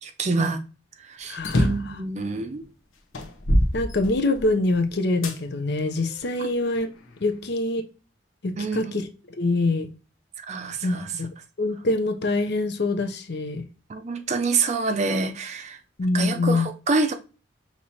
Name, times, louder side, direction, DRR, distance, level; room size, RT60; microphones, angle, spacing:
voice 1, 0.0-0.6 1.0-2.6 8.6-8.9 10.5-11.1 13.9-15.8 16.1-17.1, right 3 dB, 35° right, 0.5 m, -27 dB
voice 2, 1.3-1.9 3.7-6.9 7.2-7.8 8.4-9.1 9.4-9.9 10.8-11.0 11.6-13.6 16.0-16.6, left 2 dB, 55° left, 0.6 m, -25 dB
sound 1, 1.4-1.9 2.6-2.7 3.1-4.6 5.2-5.4 6.1-7.2, equal, 90° left, 0.8 m, -24 dB
5.9 x 2.9 x 2.7 m
head